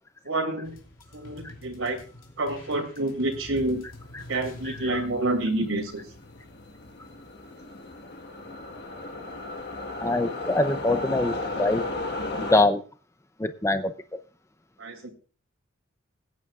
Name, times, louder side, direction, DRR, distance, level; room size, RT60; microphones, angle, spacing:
voice 1, 0.2-0.7 1.1-2.0 2.4-3.8 4.3-6.0 14.8-15.1, right 2 dB, 85° right, 4 dB, 2.7 m, -28 dB
sound 1, 0.6-7.2, left 1 dB, 80° left, 2.8 m, -46 dB
sound 2, 4.9-5.0 5.3-12.6, left 2 dB, 55° left, 1.5 m, -34 dB
voice 2, 10.0-11.8 12.4-12.8 13.4-13.9, left 2 dB, 15° left, 10 dB, 0.5 m, -23 dB
20.0 x 9.4 x 2.4 m, 0.36 s
head